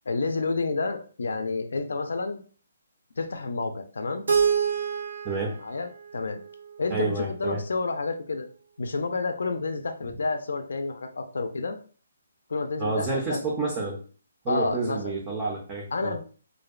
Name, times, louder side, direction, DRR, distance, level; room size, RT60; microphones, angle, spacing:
voice 1, 0.1-2.4 3.2-4.2 5.6-6.4 6.8-8.5 8.8-11.8 12.5-13.4 14.5-15.1 15.9-16.2, left 3 dB, 80° left, 7 dB, 0.4 m, -29 dB
Keyboard (musical), 4.3-7.2, right 6 dB, 80° right, 0.4 m, -28 dB
voice 2, 5.2-5.6 6.9-7.6 12.8-14.0 14.4-16.2, right 3 dB, 15° right, -2 dB, 0.4 m, -29 dB
2.5 x 2.1 x 2.3 m, 0.40 s
hypercardioid pair, 170°, 0 cm